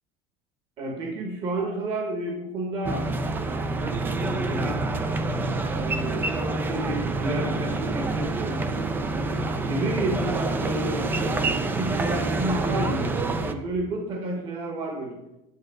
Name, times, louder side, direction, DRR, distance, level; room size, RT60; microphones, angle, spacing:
voice 1, 0.8-3.0 4.2-4.8 5.7-8.6 9.5-11.3 11.8-15.2, right 2 dB, 30° right, 1 dB, 1.3 m, -31 dB
sound 1, 2.8-13.5, right 2 dB, 10° right, 0.5 m, -27 dB
9.8 x 7.6 x 4.8 m, 0.91 s
cardioid pair, 180°, 18 cm